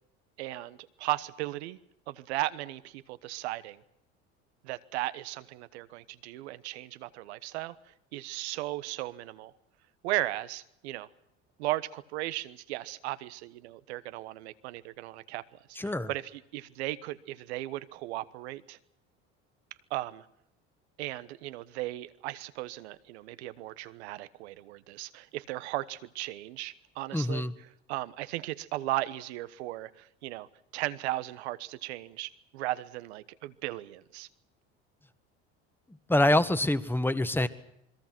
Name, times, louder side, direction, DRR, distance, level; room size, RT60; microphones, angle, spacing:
voice 1, 0.4-1.8 2.1-3.8 4.6-9.5 10.0-11.1 11.6-15.6 15.8-18.8 19.9-20.3 21.0-27.5 27.9-30.5 30.7-34.3, right 17 dB, 85° right, 1.2 m, -36 dB
voice 2, 15.7-16.1 27.1-27.5 36.1-37.5, left 1 dB, 5° left, 1.6 m, -25 dB
28.0 x 22.0 x 6.1 m
hypercardioid pair, 80°, 32 cm